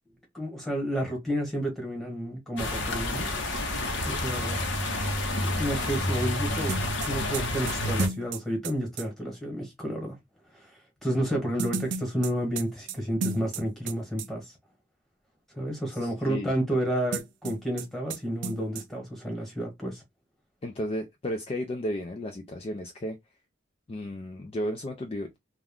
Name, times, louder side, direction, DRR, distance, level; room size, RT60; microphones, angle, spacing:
voice 1, 0.3-3.3 4.0-4.7 5.4-6.8 7.1-10.2 10.5-14.6 15.5-20.0, right 1 dB, ahead, 1.1 m, -31 dB
sound 1, 2.6-8.1, left 1 dB, 70° left, 0.7 m, -29 dB
sound 2, 6.7-9.1 11.6-13.9 14.2-14.3 17.1-17.8 18.1-18.2 18.4-18.8, right 4 dB, 70° right, 0.4 m, -33 dB
voice 2, 16.0-16.5 20.6-23.2 23.9-25.4, equal, 30° left, 0.3 m, -33 dB
2.3 x 2.2 x 3.4 m
head